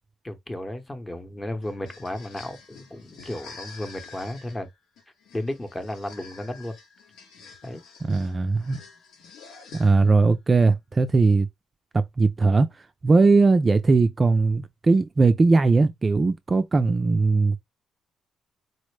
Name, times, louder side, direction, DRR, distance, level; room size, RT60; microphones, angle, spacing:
voice 1, 0.2-4.7 5.3-6.7 7.6-7.8, left 1 dB, 15° left, 0.8 m, -34 dB
sound 1, 1.6-10.3, left 4 dB, 85° left, 1.2 m, -48 dB
voice 2, 8.1-8.8 9.7-11.5 11.9-12.7 13.0-17.6, right 3 dB, 30° right, 0.3 m, -19 dB
4.2 x 2.0 x 3.1 m
cardioid pair, 90°, 0 cm